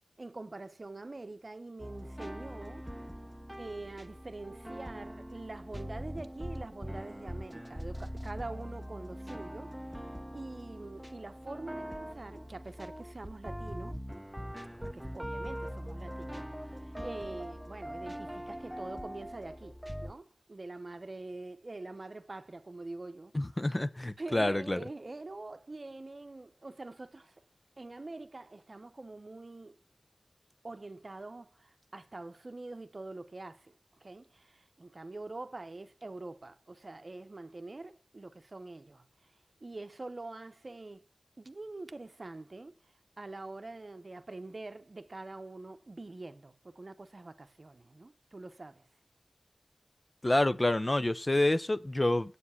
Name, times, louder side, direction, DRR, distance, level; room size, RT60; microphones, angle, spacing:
voice 1, 0.2-2.9 3.6-9.8 10.3-14.0 14.8-23.3 24.2-27.4 27.8-29.8 30.6-33.7 34.0-39.1 39.6-41.1 41.4-42.8 43.2-48.9, right 2 dB, 50° right, 0.8 m, -45 dB
sound 1, 1.8-20.1, equal, 5° right, 0.8 m, -42 dB
voice 2, 23.3-24.8 50.2-52.4, left 1 dB, 30° left, 0.7 m, -28 dB
8.4 x 7.3 x 5.7 m
wide cardioid pair, 60°, 0 cm